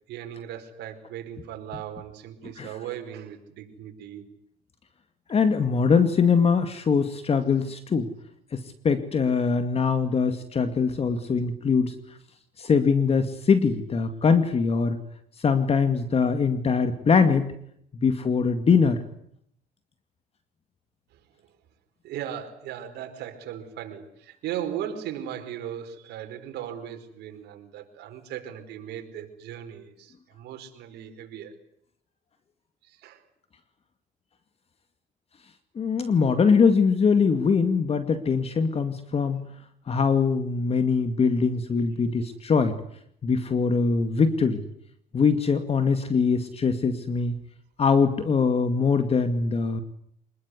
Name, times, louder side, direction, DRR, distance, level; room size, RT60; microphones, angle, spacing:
voice 1, 0.1-4.3 22.0-31.5 32.8-33.2, right 10 dB, 80° right, 6 dB, 4.8 m, -37 dB
voice 2, 5.3-8.1 8.5-12.0 12.6-15.0 15.4-17.5 18.0-19.0 35.8-39.4 39.9-42.8 43.2-44.6 45.1-47.3 47.8-49.8, left 5 dB, 35° left, 9 dB, 2.2 m, -22 dB
26.5 x 21.0 x 9.8 m, 0.71 s
cardioid pair, 110°, 17 cm